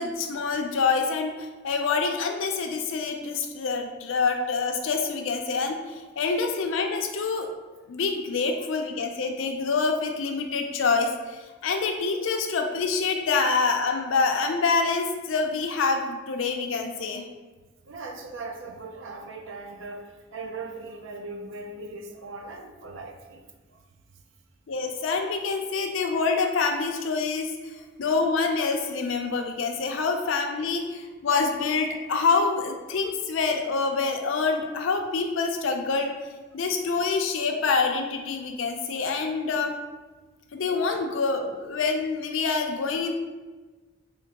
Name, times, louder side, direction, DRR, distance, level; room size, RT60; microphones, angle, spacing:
voice 1, 0.0-7.5 7.9-17.2 24.7-36.1 36.5-39.7 40.5-43.1, left 4 dB, 80° left, 4 dB, 0.5 m, -26 dB
voice 2, 17.8-23.4 23.7-23.8 27.7-27.8, right 3 dB, 75° right, 4 dB, 0.5 m, -39 dB
3.4 x 2.9 x 2.8 m, 1.3 s
head